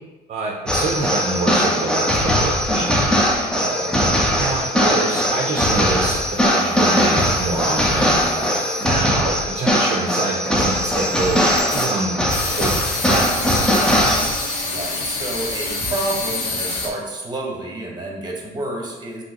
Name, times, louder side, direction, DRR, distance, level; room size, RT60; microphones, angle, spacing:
voice 1, 0.3-2.9 4.4-8.5 8.8-11.5 11.7-12.2 12.5-13.3, right 3 dB, 40° right, -1 dB, 0.6 m, -26 dB
sound 1, 0.7-14.7, equal, 5° left, 0.6 m, -20 dB
voice 2, 3.5-4.2 14.6-19.2, right 2 dB, 25° right, 0 dB, 1.2 m, -29 dB
sound 2, 5.6-8.8 10.5-16.9, left 3 dB, 80° left, 1.0 m, -29 dB
5.4 x 2.9 x 2.9 m, 1.1 s
cardioid pair, 110°, 17 cm